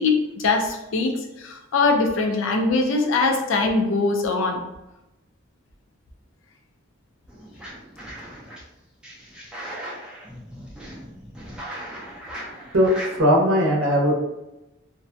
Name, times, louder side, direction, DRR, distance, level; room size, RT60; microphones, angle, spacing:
voice 1, 0.0-4.6, left 3 dB, 65° left, 3 dB, 0.4 m, -22 dB
sound 1, 7.3-8.6 9.0-13.2, right 1 dB, 5° right, 0.4 m, -38 dB
voice 2, 12.7-14.1, equal, 80° right, -1 dB, 0.6 m, -19 dB
2.5 x 2.1 x 2.5 m, 0.97 s
head